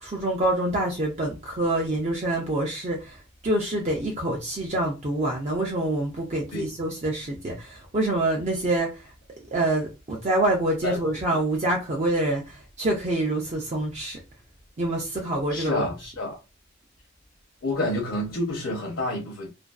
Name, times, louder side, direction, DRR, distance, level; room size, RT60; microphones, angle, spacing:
voice 1, 0.0-3.2 3.4-9.0 9.5-14.2 14.8-16.1, right 1 dB, 35° right, 0.5 m, -26 dB
voice 2, 10.8-11.2 15.5-16.4 17.6-19.5, left 1 dB, 70° left, 0.7 m, -29 dB
2.5 x 2.2 x 2.3 m
head